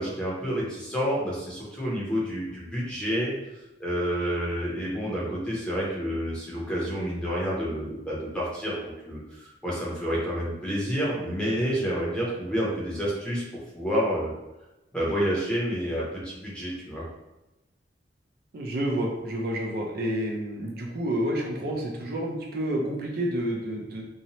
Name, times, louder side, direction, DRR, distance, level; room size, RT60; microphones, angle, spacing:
voice 1, 0.0-3.3 3.8-13.4 13.7-14.3 14.9-17.0, equal, 5° left, -6 dB, 0.7 m, -29 dB
voice 2, 18.5-24.0, right 1 dB, 55° right, -1 dB, 0.4 m, -29 dB
2.7 x 2.0 x 2.9 m, 0.99 s
head